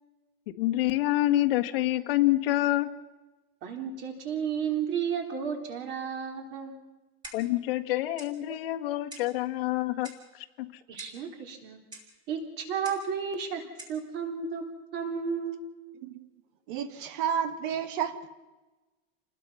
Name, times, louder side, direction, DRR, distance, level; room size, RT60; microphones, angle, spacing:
voice 1, 0.6-2.9 7.3-10.1 10.6-10.7, left 15 dB, 70° left, 1.8 m, -27 dB
voice 2, 3.6-6.7 10.9-11.8 12.3-14.6 14.9-15.6, right 7 dB, 40° right, 3.8 m, -33 dB
Clock, 7.2-7.6 8.2-8.4 9.1-9.4 10.0-10.3 11.0-11.3 11.9-12.1 12.8-13.1 13.8-14.0, right 1 dB, 15° right, 3.2 m, -46 dB
voice 3, 16.7-18.2, right 8 dB, 60° right, 1.4 m, -31 dB
28.0 x 20.0 x 5.7 m
supercardioid pair, 170°, 30 cm